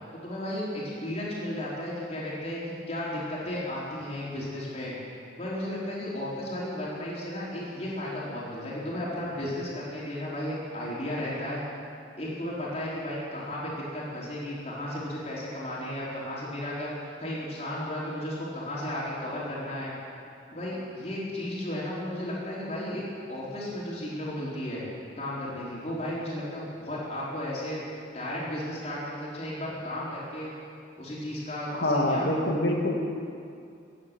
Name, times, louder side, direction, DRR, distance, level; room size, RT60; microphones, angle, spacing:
voice 1, 0.1-4.9 5.4-11.6 12.2-16.9 17.2-19.9 20.5-23.0 23.3-24.8 25.2-27.8 28.1-30.5 31.0-32.3, left 1 dB, 35° left, -6 dB, 4.2 m, -34 dB
voice 2, 31.7-32.9, left 1 dB, 70° left, 0 dB, 2.1 m, -25 dB
15.0 x 9.2 x 9.0 m, 2.5 s
head